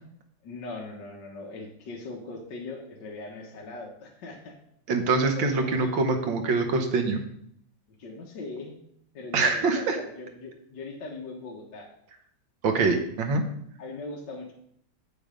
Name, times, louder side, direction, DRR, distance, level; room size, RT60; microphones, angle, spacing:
voice 1, 0.4-4.5 5.4-6.0 8.0-8.7 9.1-11.9 13.8-14.5, left 2 dB, 65° left, -1 dB, 1.9 m, -40 dB
voice 2, 4.9-7.2 9.3-10.0 12.6-13.4, right 3 dB, 70° right, 5 dB, 1.9 m, -24 dB
8.0 x 7.1 x 5.1 m, 0.71 s
omnidirectional pair, 2.2 m